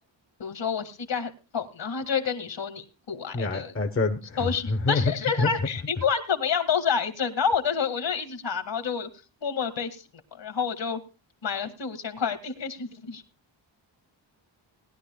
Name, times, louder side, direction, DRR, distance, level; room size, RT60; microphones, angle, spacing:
voice 1, 0.4-3.7 4.4-9.1 9.4-10.0 10.3-11.0 11.4-13.2, left 6 dB, 65° left, 8 dB, 2.0 m, -28 dB
voice 2, 3.3-5.1 5.4-5.5, left 3 dB, 30° left, 5 dB, 1.1 m, -26 dB
19.5 x 11.0 x 2.3 m, 0.31 s
wide cardioid pair, 125°, 47 cm